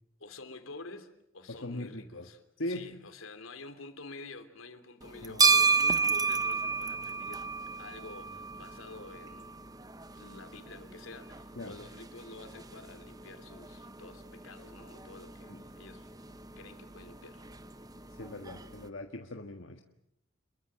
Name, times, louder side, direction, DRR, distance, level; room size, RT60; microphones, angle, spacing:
voice 1, 0.2-2.4 2.7-7.5 7.8-9.5 10.1-16.1 16.6-17.4, left 3 dB, 80° left, 8 dB, 3.2 m, -49 dB
voice 2, 1.6-2.3 2.6-3.0 5.2-5.4 11.6-11.8 15.5-15.6 18.1-19.8, left 1 dB, 65° left, 3 dB, 1.7 m, -40 dB
sound 1, 5.0-18.9, right 4 dB, 20° right, 1.0 m, -33 dB
28.5 x 22.5 x 7.6 m, 0.77 s
head